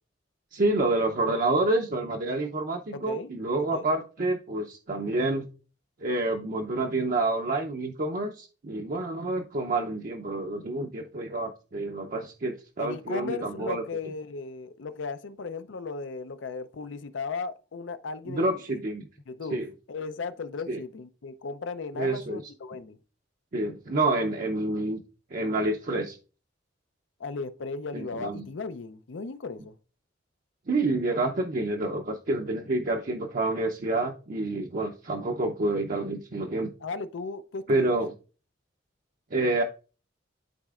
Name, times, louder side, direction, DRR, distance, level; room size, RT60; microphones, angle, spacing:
voice 1, 0.5-5.5 6.0-13.8 18.3-19.1 19.5-19.7 20.7-20.8 22.0-22.4 23.5-25.0 25.3-26.2 27.9-28.5 30.7-36.7 37.7-38.1 39.3-39.6, right 2 dB, 50° right, 0.6 m, -28 dB
voice 2, 2.9-3.3 3.7-3.9 12.8-18.8 19.3-19.6 19.9-23.0 27.2-29.7 36.8-38.0, left 4 dB, 85° left, 0.5 m, -36 dB
11.5 x 4.1 x 2.4 m
head